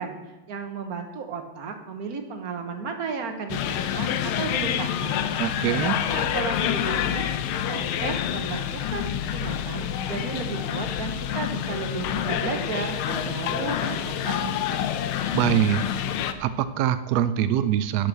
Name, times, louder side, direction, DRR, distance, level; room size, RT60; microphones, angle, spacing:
voice 1, 0.0-5.3 5.8-7.2 7.7-14.9, right 5 dB, 50° right, 5 dB, 1.5 m, -34 dB
sound 1, 3.5-16.3, left 10 dB, 85° left, 1.5 m, -27 dB
voice 2, 5.4-6.0 15.3-15.8 16.4-18.1, right 11 dB, 85° right, 12 dB, 0.8 m, -23 dB
11.0 x 6.2 x 6.8 m, 1.1 s
omnidirectional pair, 2.2 m